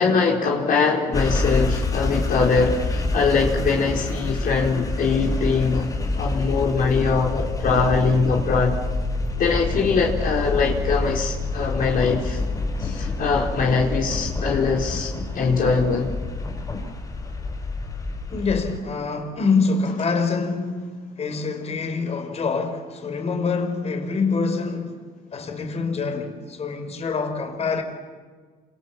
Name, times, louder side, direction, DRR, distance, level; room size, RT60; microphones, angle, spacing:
voice 1, 0.0-5.9 6.2-8.8 9.4-12.4 12.8-16.1, left 4 dB, 55° left, 4.3 m, -22 dB
sound 1, 1.1-18.8, left 2 dB, 20° left, 6.3 m, -27 dB
voice 2, 18.3-20.9 21.2-25.0 25.3-27.8, left 4 dB, 40° left, 4.9 m, -25 dB
29.0 x 27.0 x 7.3 m
cardioid pair, 110°, 17 cm